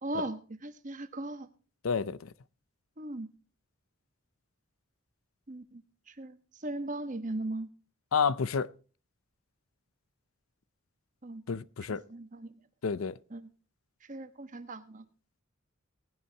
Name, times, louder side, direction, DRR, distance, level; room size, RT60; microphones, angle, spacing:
voice 1, 0.0-1.5 3.0-3.3 5.5-5.8 6.1-7.7 11.2-11.4 11.9-12.5 13.3-13.5 14.0-15.0, right 2 dB, 40° right, 1.2 m, -38 dB
voice 2, 1.8-2.3 8.1-8.7 11.5-12.0 12.8-13.2, left 6 dB, 85° left, 0.6 m, -29 dB
18.5 x 11.0 x 2.9 m
head